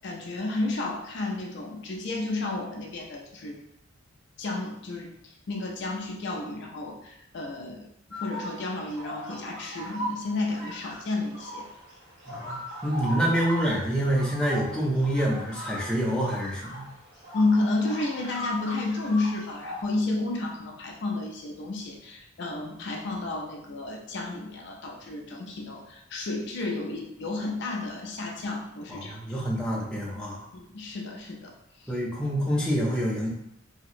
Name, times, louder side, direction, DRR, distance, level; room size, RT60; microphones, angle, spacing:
voice 1, 0.0-3.6 4.4-7.9 8.2-11.7 17.3-29.2 30.5-31.5 31.8-32.0, left 2 dB, 55° left, 1 dB, 0.4 m, -31 dB
sound 1, 8.1-19.8, equal, 60° right, 1.3 m, -39 dB
voice 2, 12.3-12.6 12.8-16.8 28.9-30.5 31.9-33.3, right 1 dB, 5° left, -5 dB, 0.5 m, -27 dB
2.9 x 2.8 x 2.5 m, 0.80 s
head